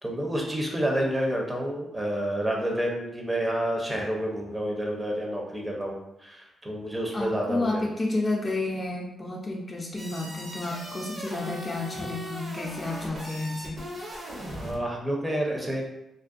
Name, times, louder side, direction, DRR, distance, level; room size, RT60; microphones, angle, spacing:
voice 1, 0.0-7.8 14.6-15.8, right 1 dB, 20° right, 0 dB, 0.7 m, -29 dB
voice 2, 7.1-13.8, left 2 dB, 35° left, -1 dB, 0.5 m, -31 dB
sound 1, 10.0-14.8, right 1 dB, 50° right, 0.8 m, -39 dB
2.5 x 2.2 x 2.5 m, 0.86 s
supercardioid pair, 60°, 0 cm